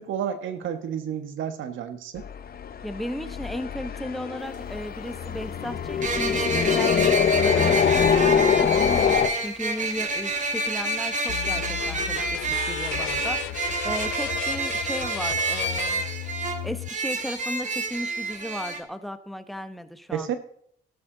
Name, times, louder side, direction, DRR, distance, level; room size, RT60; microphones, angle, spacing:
voice 1, 0.0-2.2 20.1-20.4, right 9 dB, 75° right, 9 dB, 1.4 m, -31 dB
sound 1, 2.2-9.3, left 7 dB, 50° left, 1.0 m, -24 dB
voice 2, 2.8-16.0 16.6-20.3, equal, ahead, 10 dB, 1.0 m, -35 dB
sound 2, 4.4-4.5 6.0-18.8, right 3 dB, 40° right, 2.2 m, -28 dB
sound 3, 11.3-16.9, left 17 dB, 80° left, 0.4 m, -34 dB
13.0 x 13.0 x 3.9 m, 0.67 s
cardioid pair, 90°, 20 cm